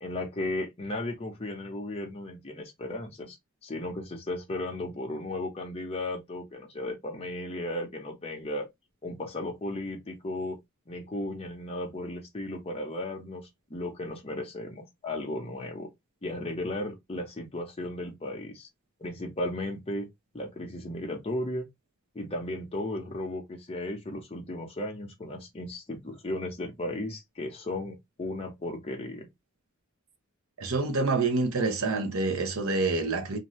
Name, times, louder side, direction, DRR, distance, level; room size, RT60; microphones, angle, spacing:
voice 1, 0.0-3.4 3.6-8.7 9.0-10.6 10.9-13.4 13.7-15.9 16.2-18.7 19.0-20.1 20.3-21.6 22.1-29.3, left 1 dB, 30° left, 0.7 m, -35 dB
voice 2, 30.6-33.4, right 3 dB, 80° right, 0.8 m, -27 dB
2.6 x 2.6 x 3.0 m
head